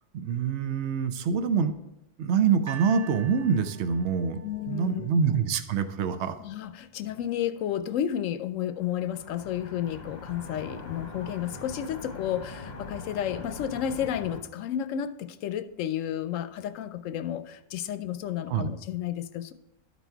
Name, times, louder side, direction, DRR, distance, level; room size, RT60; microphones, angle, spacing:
voice 1, 0.1-1.7 2.2-4.4 4.7-6.3 18.5-18.7, right 6 dB, 65° right, 10 dB, 0.9 m, -25 dB
sound 1, 2.7-5.8 6.6-6.7, right 8 dB, 25° right, 0.4 m, -45 dB
voice 2, 4.4-5.1 6.4-19.5, left 10 dB, 80° left, 12 dB, 0.9 m, -32 dB
sound 2, 8.7-14.4, left 3 dB, 35° left, 1.0 m, -42 dB
12.0 x 4.1 x 4.5 m, 0.92 s
omnidirectional pair, 1.3 m